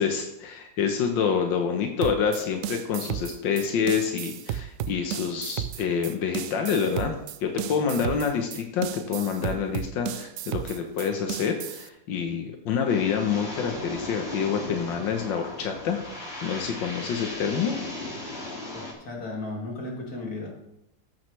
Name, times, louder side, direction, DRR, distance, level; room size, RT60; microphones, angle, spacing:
voice 1, 0.0-7.1 7.4-16.0 16.4-17.7, left 6 dB, 90° left, 4 dB, 1.7 m, -27 dB
sound 1, 2.0-11.9, right 10 dB, 85° right, 0.7 m, -34 dB
sound 2, 12.9-18.9, left 1 dB, 35° left, 2.7 m, -37 dB
voice 2, 18.7-20.6, left 2 dB, 50° left, -1 dB, 2.9 m, -35 dB
14.0 x 8.9 x 3.3 m, 0.86 s
omnidirectional pair, 2.0 m